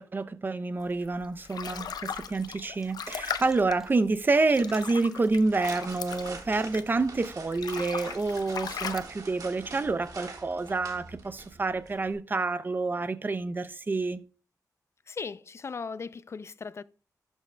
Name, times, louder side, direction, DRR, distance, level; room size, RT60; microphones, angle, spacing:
voice 1, 0.0-14.2, right 3 dB, 30° right, 0.5 m, -28 dB
sound 1, 1.0-7.1 7.4-9.0, left 7 dB, 85° left, 0.6 m, -38 dB
sound 2, 2.0-3.9 4.7-5.0, right 1 dB, 5° right, 1.5 m, -53 dB
sound 3, 5.3-12.1, right 3 dB, 65° right, 1.5 m, -45 dB
voice 2, 15.1-16.8, left 5 dB, 45° left, 0.3 m, -38 dB
12.0 x 6.3 x 2.2 m
wide cardioid pair, 115°, 7 cm